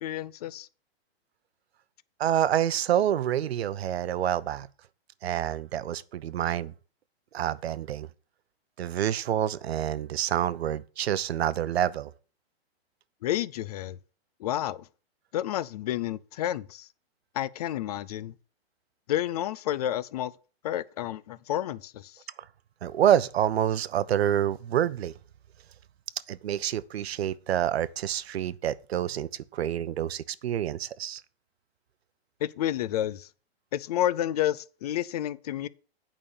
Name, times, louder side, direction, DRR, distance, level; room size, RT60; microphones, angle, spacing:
voice 1, 0.0-0.7 13.2-14.0 14.4-14.9 15.3-16.9 17.3-18.3 19.1-20.3 20.6-22.2 32.4-33.3 33.7-35.7, left 12 dB, 40° left, 0.4 m, -30 dB
voice 2, 2.2-4.7 5.2-6.7 7.3-8.1 8.8-12.1 22.8-25.1 26.3-31.2, right 10 dB, 85° right, 0.8 m, -27 dB
9.0 x 5.5 x 6.8 m
hypercardioid pair, 160°, 31 cm